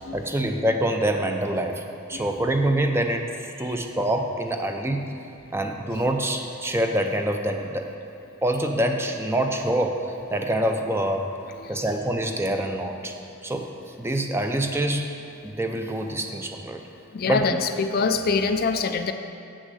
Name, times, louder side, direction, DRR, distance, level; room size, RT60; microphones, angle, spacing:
voice 1, 0.0-1.8 2.1-5.1 5.5-7.9 8.4-10.0 10.3-11.3 11.7-13.2 13.4-13.7 14.0-15.1 15.4-16.8 17.3-17.4, right 1 dB, 10° right, 4 dB, 0.5 m, -25 dB
voice 2, 17.1-19.1, left 4 dB, 45° left, 7 dB, 0.4 m, -25 dB
7.3 x 6.3 x 7.9 m, 2.6 s
head